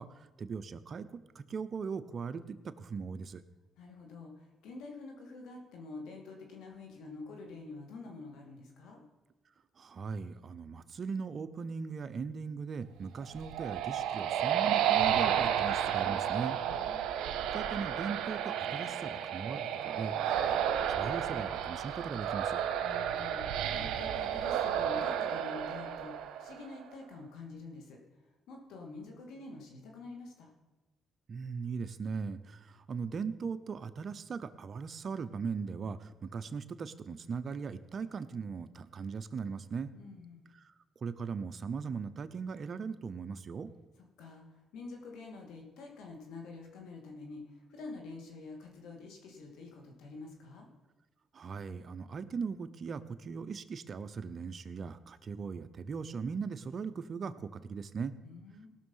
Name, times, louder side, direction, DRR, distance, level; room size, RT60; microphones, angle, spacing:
voice 1, 0.0-3.4 9.8-16.6 17.5-22.6 31.3-39.9 40.5-40.7 41.0-43.7 51.3-58.1, right 5 dB, 50° right, 12 dB, 0.7 m, -39 dB
voice 2, 3.8-9.0 16.6-17.1 22.8-28.0 28.5-30.5 39.9-40.5 44.2-50.7 58.2-58.7, left 3 dB, 90° left, 2 dB, 2.5 m, -47 dB
sound 1, 13.2-26.7, right 9 dB, 90° right, 0.9 m, -32 dB
17.5 x 6.4 x 5.6 m, 1.1 s
cardioid pair, 90°, 0 cm